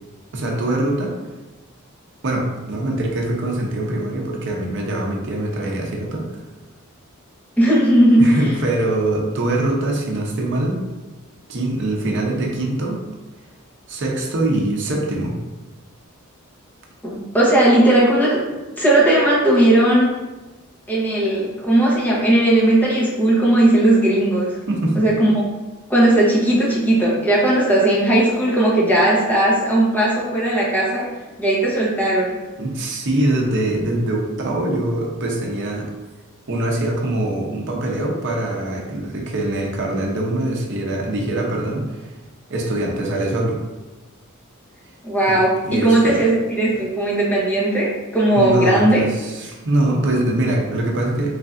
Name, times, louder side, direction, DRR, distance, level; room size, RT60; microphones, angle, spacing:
voice 1, 0.3-1.2 2.2-6.2 8.2-10.9 11.5-13.0 13.9-15.4 24.7-25.0 32.6-35.9 36.5-42.1 42.5-43.6 45.3-45.4 45.6-46.2 48.3-51.4, right 1 dB, 55° right, -1 dB, 0.7 m, -23 dB
voice 2, 7.6-8.4 17.0-18.4 18.8-20.2 20.9-24.6 24.9-25.4 25.9-31.1 31.4-32.4 45.0-49.0, right 1 dB, 10° left, -6 dB, 0.9 m, -17 dB
3.7 x 3.2 x 2.5 m, 1.1 s
head